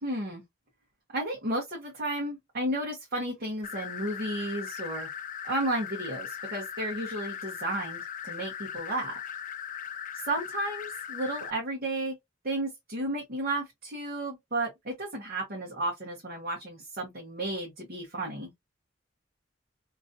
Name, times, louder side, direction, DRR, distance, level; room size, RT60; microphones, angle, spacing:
voice 1, 0.0-0.4 1.1-5.1 5.4-9.1 10.1-12.2 12.4-18.5, right 1 dB, 50° right, 1.1 m, -33 dB
sound 1, 3.6-11.5, left 8 dB, 40° left, 0.4 m, -39 dB
2.9 x 2.5 x 2.6 m
head